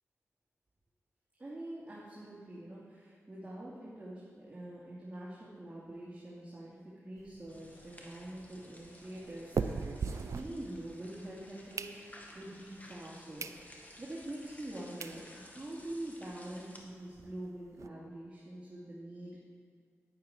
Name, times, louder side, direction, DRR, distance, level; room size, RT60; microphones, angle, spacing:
voice 1, 1.4-13.5 14.0-19.4, right 1 dB, 25° right, -8 dB, 2.5 m, -45 dB
sound 1, 7.2-11.1 11.5-12.5 13.0-13.1 13.4-13.6 14.0-14.1 14.7-14.8 15.0-15.2 15.6-15.7 15.9-16.0 16.3-16.4 16.7-17.9, right 5 dB, 70° right, 0.4 m, -40 dB
sound 2, 7.5-16.8, left 1 dB, 30° left, 1.7 m, -55 dB
9.3 x 9.3 x 4.8 m, 2.1 s
cardioid pair, 50°, 6 cm